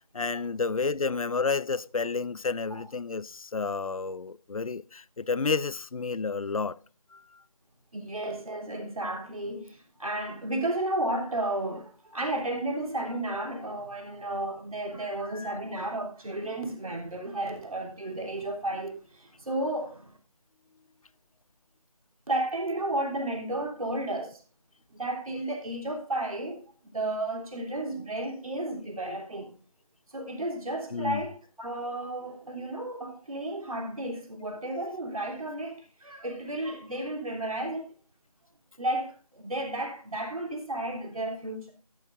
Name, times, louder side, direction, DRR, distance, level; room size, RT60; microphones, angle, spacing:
voice 1, 0.1-6.8 7.1-7.4 13.3-13.7 15.3-15.5 30.9-31.2, left 4 dB, 65° left, 0.5 m, -31 dB
voice 2, 7.9-20.1 22.3-24.4 24.9-26.6 26.9-29.5 30.1-37.9 38.8-41.7, right 1 dB, 65° right, 3.5 m, -33 dB
12.5 x 12.0 x 2.6 m
figure-of-eight pair, 165°, 20 cm